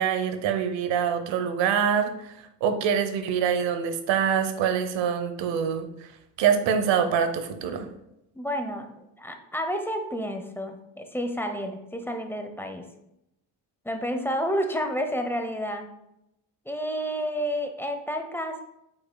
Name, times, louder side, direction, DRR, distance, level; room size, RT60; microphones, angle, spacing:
voice 1, 0.0-2.3 2.6-5.9 6.4-7.9, right 7 dB, 85° right, 8 dB, 0.9 m, -25 dB
voice 2, 8.3-12.8 13.8-15.9 16.6-18.6, equal, 5° left, 5 dB, 0.8 m, -30 dB
8.2 x 5.6 x 2.3 m, 0.86 s
cardioid pair, 95°, 43 cm